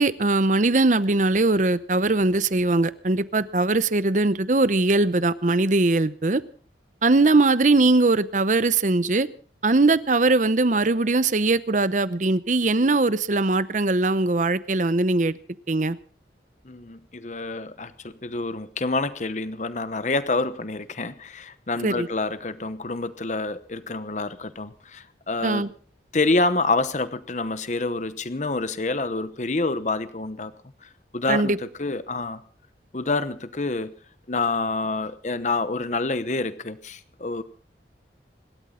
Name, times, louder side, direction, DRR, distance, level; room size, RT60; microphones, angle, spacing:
voice 1, 0.0-6.4 7.0-9.3 9.6-15.4 15.7-16.0 21.8-22.1 25.4-25.7 31.3-31.6, right 2 dB, 45° right, 16 dB, 0.8 m, -21 dB
voice 2, 16.6-25.6 26.1-30.5 30.8-32.4 32.9-33.9 34.3-37.4, left 3 dB, 40° left, 13 dB, 0.9 m, -27 dB
26.0 x 13.0 x 3.8 m, 0.43 s
head